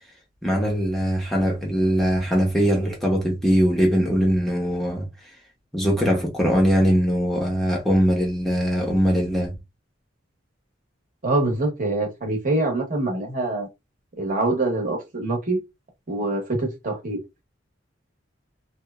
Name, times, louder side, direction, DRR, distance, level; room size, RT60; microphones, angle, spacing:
voice 1, 0.4-5.1 5.7-9.5, equal, ahead, 0.6 m, -21 dB
voice 2, 11.2-13.7 14.2-15.6 16.1-17.2, right 2 dB, 40° right, 0.8 m, -24 dB
2.8 x 2.1 x 2.2 m
head